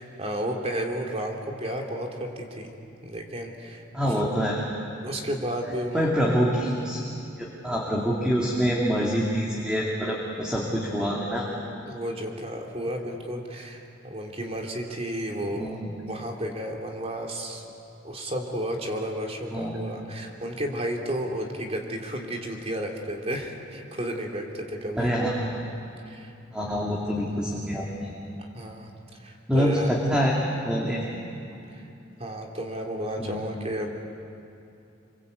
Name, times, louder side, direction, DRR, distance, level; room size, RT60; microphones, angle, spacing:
voice 1, 0.0-2.7 3.0-3.8 5.0-6.1 11.8-15.7 16.1-17.6 18.0-25.1 26.0-26.3 28.4-28.9 29.2-29.9 31.7-31.9 32.2-33.9, right 1 dB, 35° right, 1 dB, 3.1 m, -32 dB
voice 2, 3.9-4.7 5.9-7.0 7.4-11.5 15.5-15.9 19.5-19.8 25.0-25.5 26.5-28.1 29.5-30.4 30.6-31.0 31.5-31.6 33.2-33.4, equal, 5° right, -3 dB, 2.7 m, -26 dB
27.0 x 24.0 x 8.3 m, 2.6 s
head